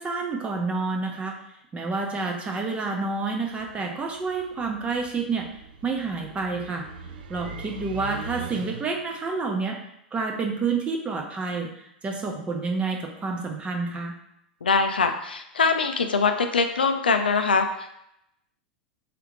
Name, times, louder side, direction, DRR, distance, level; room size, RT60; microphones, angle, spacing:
voice 1, 0.0-1.4 1.7-6.9 7.3-9.8 10.1-14.1, right 4 dB, 20° right, 2 dB, 0.8 m, -29 dB
sound 1, 3.5-9.1, right 4 dB, 70° right, 0.5 m, -41 dB
voice 2, 14.6-18.0, left 4 dB, 85° left, 6 dB, 0.5 m, -23 dB
3.7 x 3.4 x 3.1 m, 0.79 s
hypercardioid pair, 95°, 5 cm